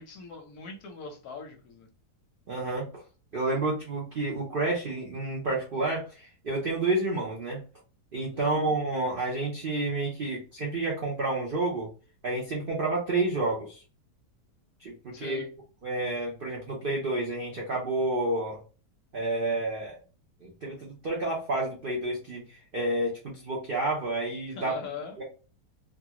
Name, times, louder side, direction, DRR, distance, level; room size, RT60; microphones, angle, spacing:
voice 1, 0.0-1.9 8.3-8.7 15.1-15.5 24.5-25.2, left 5 dB, 70° left, 3 dB, 1.0 m, -42 dB
voice 2, 2.5-3.0 3.3-7.6 8.1-11.9 12.2-13.8 14.8-15.4 15.8-18.6 19.1-20.0 20.4-24.8 25.2-25.3, right 2 dB, 65° right, -3 dB, 0.5 m, -30 dB
2.8 x 2.4 x 2.8 m, 0.37 s
omnidirectional pair, 1.9 m